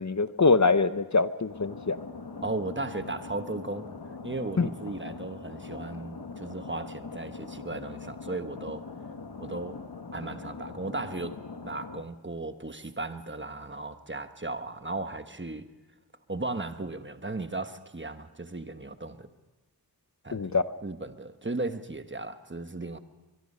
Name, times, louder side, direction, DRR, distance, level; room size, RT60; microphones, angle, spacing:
voice 1, 0.0-2.0 4.6-4.7 20.3-20.6, left 4 dB, 45° left, 0.8 m, -24 dB
sound 1, 1.5-12.0, left 4 dB, 70° left, 1.4 m, -42 dB
voice 2, 2.4-3.9 4.2-8.9 9.4-9.7 10.1-11.4 11.6-15.7 16.3-19.3 20.2-23.0, right 2 dB, 30° right, 1.2 m, -36 dB
23.0 x 22.5 x 5.5 m
wide cardioid pair, 60°, 40 cm